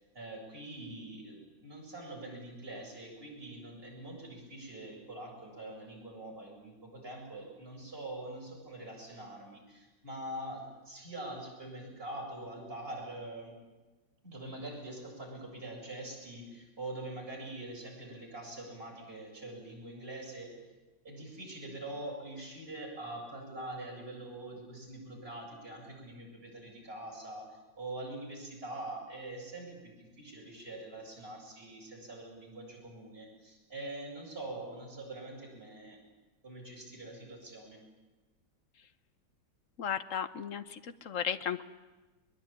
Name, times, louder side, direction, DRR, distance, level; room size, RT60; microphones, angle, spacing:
voice 1, 0.1-13.5 14.2-20.5 21.0-36.0 36.4-37.8, right 1 dB, 30° right, -2 dB, 7.9 m, -44 dB
voice 2, 39.8-41.6, left 8 dB, 50° left, 11 dB, 1.2 m, -35 dB
22.5 x 22.0 x 9.0 m, 1.2 s
omnidirectional pair, 1.9 m